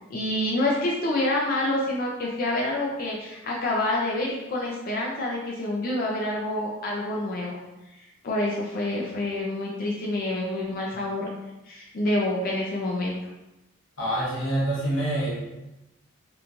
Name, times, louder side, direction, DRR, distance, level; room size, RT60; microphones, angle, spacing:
voice 1, 0.1-7.6 8.2-11.3 11.7-13.2, left 1 dB, 45° left, -2 dB, 0.4 m, -27 dB
voice 2, 14.0-15.4, right 1 dB, 65° left, -6 dB, 1.1 m, -26 dB
3.0 x 2.2 x 2.5 m, 0.95 s
head